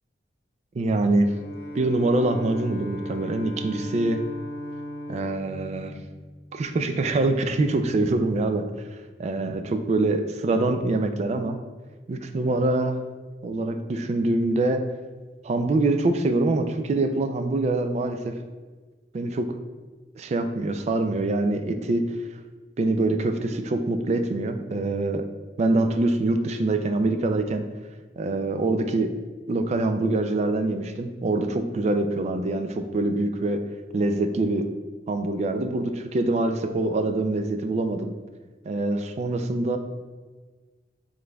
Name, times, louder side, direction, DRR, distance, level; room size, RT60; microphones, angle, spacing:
voice 1, 0.7-1.3 1.7-4.2 5.1-5.9 6.5-8.7 9.2-11.6 12.1-13.0 13.4-14.8 15.4-18.3 19.1-19.6 20.2-22.0 22.8-25.2 25.6-27.6 28.2-29.1 29.5-33.6 33.9-34.7 35.1-38.1 38.7-39.8, right 2 dB, 40° right, 7 dB, 0.3 m, -24 dB
Bowed string instrument, 1.2-6.8, equal, 65° left, 1.0 m, -37 dB
5.0 x 3.7 x 2.3 m, 1.4 s
head